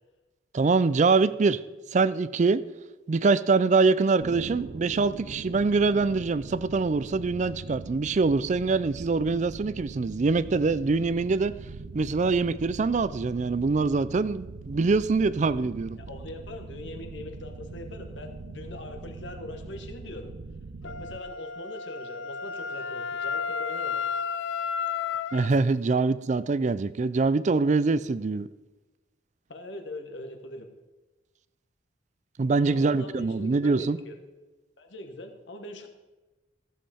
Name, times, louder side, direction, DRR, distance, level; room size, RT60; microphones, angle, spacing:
voice 1, 0.5-1.6 1.9-2.6 3.1-11.5 11.9-16.0 25.3-28.5 32.4-34.0, right 4 dB, 40° right, 16 dB, 0.4 m, -24 dB
sound 1, 4.2-21.2, right 3 dB, 85° right, 0.6 m, -42 dB
voice 2, 16.0-20.3 20.8-24.1 29.5-30.7 32.7-34.2 34.8-35.9, left 2 dB, 75° left, 6 dB, 1.3 m, -41 dB
Wind instrument woodwind instrument, 20.8-25.5, left 6 dB, 90° left, 0.5 m, -32 dB
14.5 x 7.6 x 4.3 m, 1.1 s
head